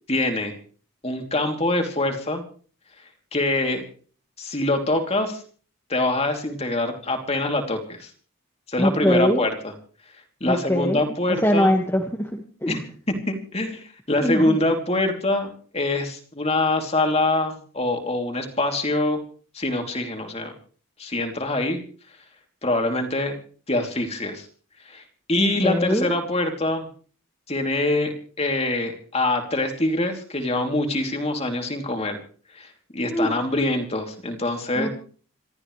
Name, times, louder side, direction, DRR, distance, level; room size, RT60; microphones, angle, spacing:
voice 1, 0.1-0.5 1.0-2.4 3.3-3.8 4.4-5.4 5.9-8.1 8.7-9.5 10.4-11.7 12.7-12.8 13.1-19.2 19.5-20.5 21.0-21.8 22.6-23.3 23.7-24.5 24.9-25.0 25.3-26.9 27.5-32.2 32.6-34.9, left 2 dB, 30° left, 4 dB, 3.0 m, -24 dB
voice 2, 8.8-9.4 10.5-12.3 12.6-12.9 14.2-14.6 25.4-26.1 33.0-33.3 34.7-34.9, equal, 10° left, 1 dB, 1.7 m, -22 dB
27.0 x 13.5 x 3.3 m, 0.43 s
head